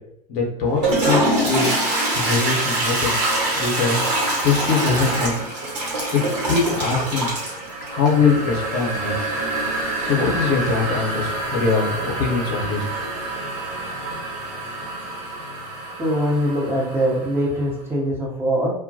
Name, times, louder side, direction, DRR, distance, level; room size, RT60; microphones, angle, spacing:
voice 1, 0.3-1.2 1.5-1.7 2.1-3.2 3.6-4.0 4.4-5.4 6.1-7.3 7.9-9.1 10.0-13.1, left 4 dB, 55° left, -2 dB, 0.8 m, -22 dB
Toilet flush, 0.6-17.4, right 2 dB, 80° right, 1.0 m, -25 dB
voice 2, 16.0-18.7, equal, 10° right, -3 dB, 0.8 m, -22 dB
2.2 x 2.1 x 2.7 m, 0.74 s
hypercardioid pair, 90°, 20 cm